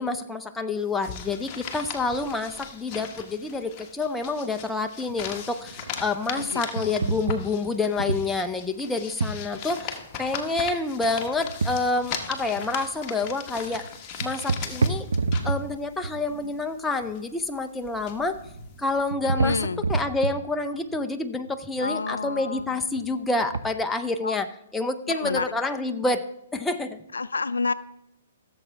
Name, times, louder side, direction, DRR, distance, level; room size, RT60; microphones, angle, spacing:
voice 1, 0.0-13.8 14.2-15.1 15.4-18.4 18.8-19.6 19.9-24.5 24.7-26.2 26.5-27.0, left 3 dB, 10° left, 6 dB, 0.6 m, -28 dB
sound 1, 0.8-19.1, left 6 dB, 30° left, 1.3 m, -39 dB
sound 2, 5.1-5.2 5.4-6.4 6.8-8.5 9.2-9.5 11.4-12.1 12.3-12.9 13.2-13.4 13.7-13.9 14.2-15.8 16.0-16.7 18.1-18.7 19.0-21.0 21.5-22.7 23.0-23.1 23.4-23.6, right 3 dB, 80° right, 0.7 m, -29 dB
voice 2, 6.3-7.0 19.4-19.8 21.8-22.8 24.2-24.4 25.1-25.5 27.1-27.7, left 4 dB, 85° left, 15 dB, 0.4 m, -29 dB
16.0 x 7.2 x 3.4 m, 0.84 s
hypercardioid pair, 130°, 0 cm